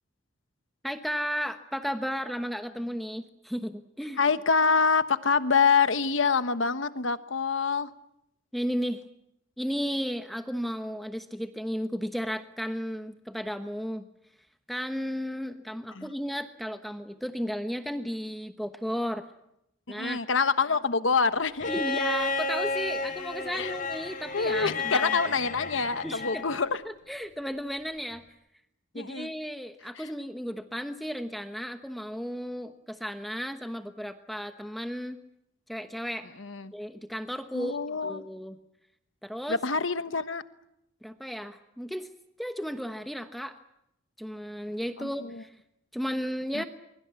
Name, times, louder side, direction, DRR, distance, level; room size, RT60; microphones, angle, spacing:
voice 1, 0.8-4.2 8.5-9.0 9.6-14.1 14.7-19.2 19.9-20.2 21.7-25.1 26.0-26.4 26.8-28.2 28.9-35.2 35.7-36.3 36.7-37.8 38.0-38.5 39.2-39.6 41.0-42.1 42.4-43.6 44.2-45.6 45.9-46.6, equal, ahead, 7 dB, 1.1 m, -34 dB
voice 2, 4.2-7.9 15.9-16.1 19.9-21.7 23.5-23.7 24.3-26.8 28.9-29.3 29.9-30.1 36.4-36.7 37.5-38.2 39.5-40.4 45.0-45.4 46.5-46.6, left 5 dB, 85° left, 12 dB, 1.2 m, -26 dB
Bowed string instrument, 21.6-26.6 28.1-28.2, left 3 dB, 45° left, 4.2 m, -32 dB
23.5 x 22.5 x 8.3 m, 0.81 s
head